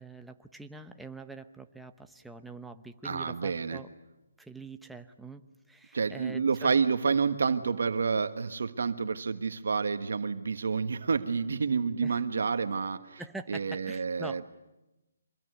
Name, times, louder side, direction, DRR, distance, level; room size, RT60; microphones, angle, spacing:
voice 1, 0.0-3.9 4.4-6.7 12.0-12.2 13.2-14.5, right 3 dB, ahead, 6 dB, 0.9 m, -45 dB
voice 2, 3.0-3.8 5.9-13.2 13.5-14.5, right 5 dB, 70° right, 9 dB, 1.4 m, -29 dB
25.5 x 21.0 x 9.5 m, 1.0 s
hypercardioid pair, 165°, 0 cm